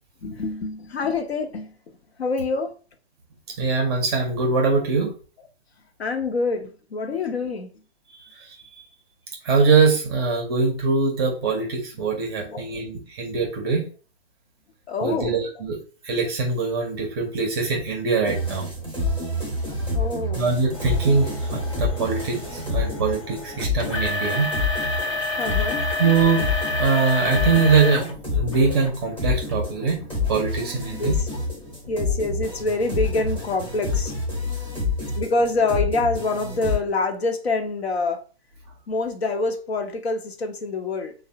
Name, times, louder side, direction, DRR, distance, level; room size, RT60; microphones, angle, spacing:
voice 1, 0.2-1.7 2.2-2.7 6.0-7.7 12.4-12.6 14.9-15.4 19.9-20.5 25.4-25.9 31.0-31.3 31.9-34.1 35.2-38.2 38.9-41.1, left 3 dB, 70° left, 0.6 m, -26 dB
voice 2, 3.6-5.1 9.4-13.8 15.0-15.8 16.0-18.7 20.3-24.5 26.0-26.5 26.8-30.0 30.3-31.2, right 4 dB, 25° right, 0.5 m, -22 dB
sound 1, 18.2-36.8, left 3 dB, 5° left, 0.7 m, -28 dB
sound 2, 20.7-28.1 28.5-28.9 29.5-29.6 30.3-30.4, left 2 dB, 30° left, 0.4 m, -29 dB
3.2 x 2.0 x 2.6 m
figure-of-eight pair, 125°, 33 cm